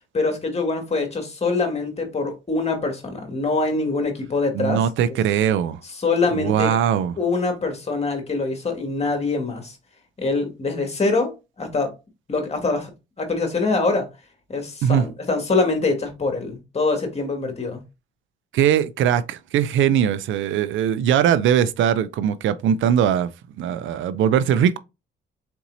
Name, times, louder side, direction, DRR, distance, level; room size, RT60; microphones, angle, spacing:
voice 1, 0.1-4.8 5.9-6.8 7.2-9.8 10.2-11.9 12.3-12.9 13.2-14.1 14.5-17.8, left 3 dB, 30° left, 1.9 m, -24 dB
voice 2, 4.5-5.8 6.3-7.1 14.8-15.0 18.5-23.3 23.6-24.8, right 9 dB, 75° right, 0.5 m, -20 dB
4.4 x 4.1 x 2.6 m
cardioid pair, 90°, 20 cm